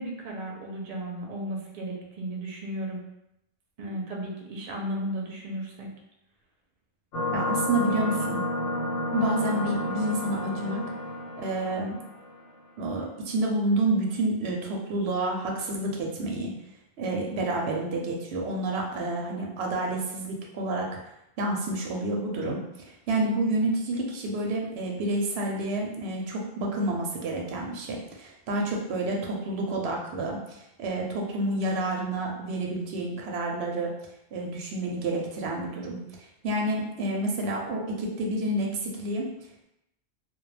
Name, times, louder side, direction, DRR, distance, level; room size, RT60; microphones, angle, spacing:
voice 1, 0.0-3.0 3.8-5.9, right 1 dB, 55° right, 0 dB, 0.6 m, -34 dB
sound 1, 7.1-12.4, left 1 dB, 85° left, 1.0 m, -31 dB
voice 2, 7.3-8.4 9.1-10.8 11.4-12.0 12.8-16.5 17.0-20.9 21.4-22.6 22.8-33.9 34.3-39.3, right 1 dB, 85° right, 0 dB, 0.8 m, -29 dB
2.2 x 2.1 x 3.1 m, 0.84 s
omnidirectional pair, 1.0 m